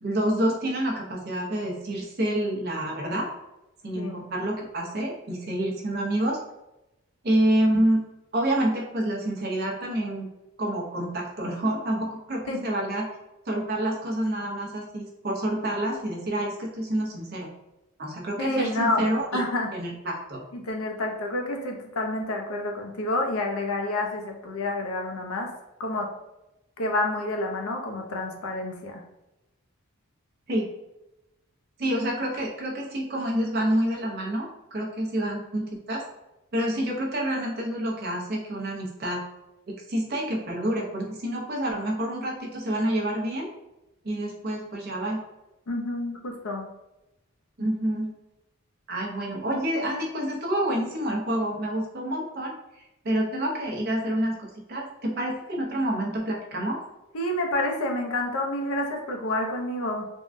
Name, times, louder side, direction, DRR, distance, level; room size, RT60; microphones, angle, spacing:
voice 1, 0.0-3.3 3.8-6.4 7.2-8.0 8.3-10.3 10.6-13.1 13.5-17.5 18.0-19.4 19.7-20.4 30.5-30.7 31.8-36.0 36.5-39.2 39.7-43.5 44.0-45.2 47.6-48.1 48.9-52.5 53.0-56.8, right 1 dB, 45° right, -1 dB, 0.6 m, -28 dB
voice 2, 18.4-19.0 19.3-19.7 20.5-25.5 25.8-26.1 26.8-29.0 45.7-46.7 57.1-60.1, left 2 dB, 85° left, 2 dB, 0.6 m, -29 dB
3.5 x 2.2 x 2.5 m, 0.93 s
head